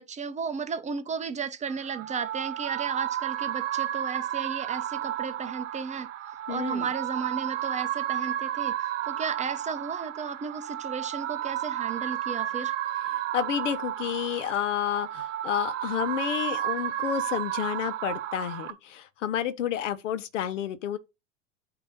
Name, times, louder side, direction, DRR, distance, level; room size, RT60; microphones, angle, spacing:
voice 1, 0.0-6.1 6.5-12.7, right 5 dB, 20° right, 0.7 m, -34 dB
sound 1, 1.7-18.7, right 12 dB, 70° right, 0.9 m, -32 dB
voice 2, 6.5-6.9 13.3-21.0, left 9 dB, 70° left, 1.0 m, -30 dB
8.5 x 2.9 x 5.2 m
hypercardioid pair, 100°, 38 cm